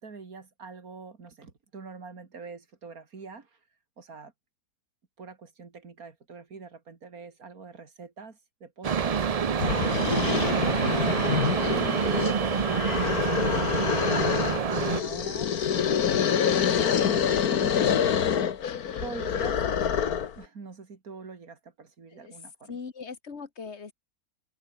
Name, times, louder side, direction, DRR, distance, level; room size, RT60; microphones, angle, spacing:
voice 1, 0.0-3.5 4.0-4.3 5.2-9.2 10.3-11.2 11.5-13.3 13.8-18.1 19.0-22.8, right 4 dB, 70° right, 3.1 m, -44 dB
sound 1, 8.8-15.0, right 6 dB, 50° right, 0.4 m, -27 dB
sound 2, 9.6-20.4, left 8 dB, 80° left, 1.8 m, -26 dB
voice 2, 22.7-23.9, left 5 dB, 45° left, 2.1 m, -40 dB
omnidirectional pair, 1.6 m